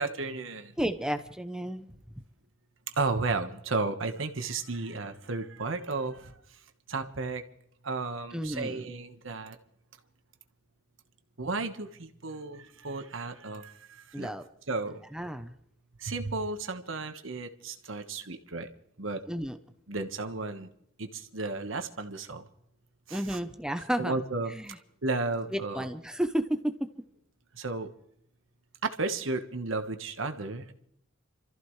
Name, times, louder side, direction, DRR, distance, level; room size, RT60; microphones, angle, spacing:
voice 1, 0.0-0.7 3.0-6.3 6.9-7.4 7.8-9.6 11.4-14.3 14.7-15.0 16.0-18.7 19.0-19.2 19.9-20.7 21.0-22.5 23.1-23.4 24.0-24.5 25.0-25.9 27.5-27.9 28.8-30.7, right 3 dB, 75° right, 7 dB, 1.3 m, -33 dB
voice 2, 0.8-1.9 8.3-8.9 14.1-14.4 15.1-15.5 19.3-19.6 23.1-24.2 24.5-24.8 25.5-26.5, equal, 5° right, 8 dB, 0.7 m, -32 dB
27.5 x 14.5 x 3.2 m, 0.73 s
head